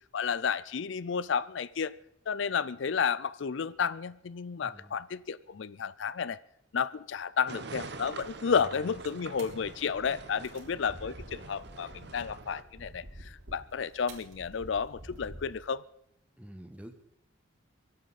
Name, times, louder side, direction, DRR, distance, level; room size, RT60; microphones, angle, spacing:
voice 1, 0.1-1.9 2.3-6.4 6.7-15.8, left 6 dB, 70° left, 18 dB, 0.5 m, -32 dB
voice 2, 4.6-4.9 8.5-8.6 8.9-9.0 16.4-16.9, right 1 dB, 5° right, 7 dB, 1.3 m, -48 dB
sound 1, 7.5-12.6, right 3 dB, 55° right, 1.0 m, -45 dB
sound 2, 7.8-15.7, right 1 dB, 85° right, 3.9 m, -50 dB
23.5 x 11.5 x 4.2 m, 0.75 s
head